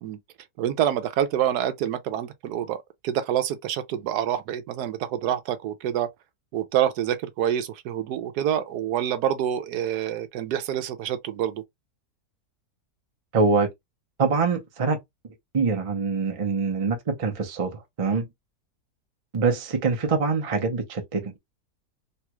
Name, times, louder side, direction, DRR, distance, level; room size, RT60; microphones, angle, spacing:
voice 1, 0.6-6.1 6.5-11.6, right 10 dB, 75° right, 1.1 m, -27 dB
voice 2, 13.3-13.7 14.2-15.0 15.5-18.3 19.3-21.4, right 4 dB, 40° right, 0.5 m, -24 dB
3.2 x 2.3 x 2.9 m
omnidirectional pair, 1.7 m